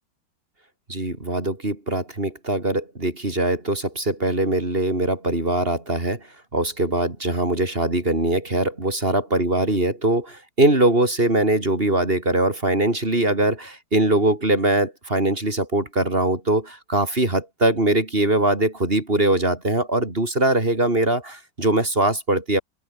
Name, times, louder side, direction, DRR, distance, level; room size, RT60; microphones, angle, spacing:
voice 1, 0.9-6.3 6.5-22.6, right 1 dB, 25° right, 3.9 m, -22 dB
open air
omnidirectional pair, 2.3 m